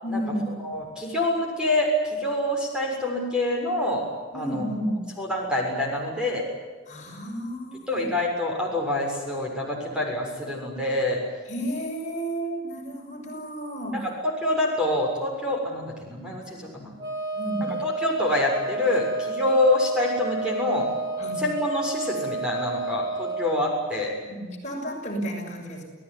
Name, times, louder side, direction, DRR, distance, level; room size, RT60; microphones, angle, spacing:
voice 1, 0.0-0.5 4.3-5.0 6.9-8.1 11.5-14.1 17.3-17.7 21.2-21.4 24.2-25.8, right 1 dB, 35° left, 0 dB, 6.6 m, -32 dB
voice 2, 0.6-4.1 4.3-4.6 5.2-6.4 7.9-11.2 13.9-14.1 14.4-16.9 17.8-20.9 21.4-24.1, left 1 dB, 5° right, -1 dB, 6.8 m, -26 dB
Wind instrument woodwind instrument, 17.0-23.7, right 3 dB, 20° right, 3.5 m, -31 dB
29.5 x 18.0 x 9.9 m, 1.4 s
head